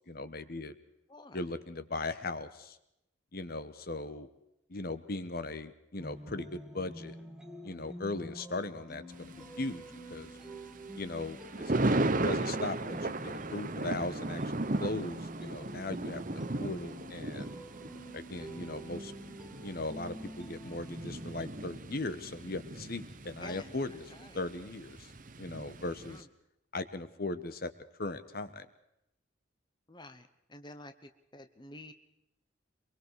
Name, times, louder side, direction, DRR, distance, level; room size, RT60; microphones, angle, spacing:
voice 1, 0.1-0.8 1.3-2.8 3.3-4.3 4.7-7.1 7.6-9.8 10.1-10.4 10.9-11.8 12.2-17.5 18.1-19.1 19.6-24.0 24.3-25.1 25.4-26.3 26.7-27.7 28.0-28.7, left 2 dB, 50° left, 12 dB, 1.2 m, -38 dB
voice 2, 1.1-1.4 23.4-23.7 24.1-24.4 26.1-26.3 29.9-31.9, left 2 dB, 25° left, 9 dB, 1.1 m, -50 dB
sound 1, 6.0-21.8, equal, 5° right, 2.2 m, -47 dB
Thunder, 9.1-26.2, right 2 dB, 45° right, 1.1 m, -36 dB
24.0 x 23.0 x 4.7 m, 0.82 s
head